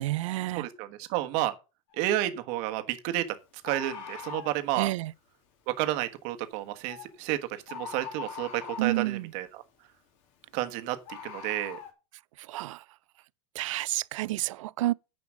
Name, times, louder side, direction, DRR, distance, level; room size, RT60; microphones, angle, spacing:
voice 1, 0.0-0.7 4.8-5.1 8.8-9.3 12.4-12.8 13.6-14.9, right 17 dB, 70° right, 0.4 m, -30 dB
voice 2, 0.5-1.5 2.0-3.2 3.6-4.9 5.7-9.6 10.5-11.8, right 14 dB, 45° right, 1.3 m, -31 dB
Bird, 1.9-2.1 3.6-4.6 6.9-7.1 7.7-9.0 11.1-11.9, left 7 dB, 45° left, 2.5 m, -41 dB
9.7 x 5.1 x 6.2 m
supercardioid pair, 145°, 17 cm